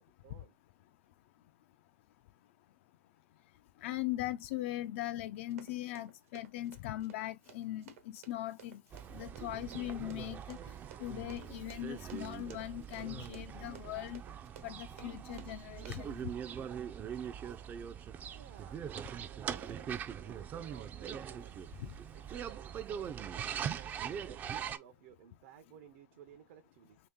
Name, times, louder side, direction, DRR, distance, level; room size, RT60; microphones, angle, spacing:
voice 1, 0.2-0.6 18.3-21.6 22.1-27.0, right 10 dB, 65° right, 0.6 m, -56 dB
voice 2, 3.8-8.8 9.1-10.6 11.0-14.2 14.6-16.2 21.8-21.9, left 15 dB, 60° left, 0.3 m, -40 dB
Run, 5.5-16.2, right 9 dB, 80° right, 1.1 m, -56 dB
sound 1, 8.9-24.8, right 8 dB, 25° right, 0.3 m, -42 dB
3.1 x 2.8 x 3.6 m
supercardioid pair, 140°, 7 cm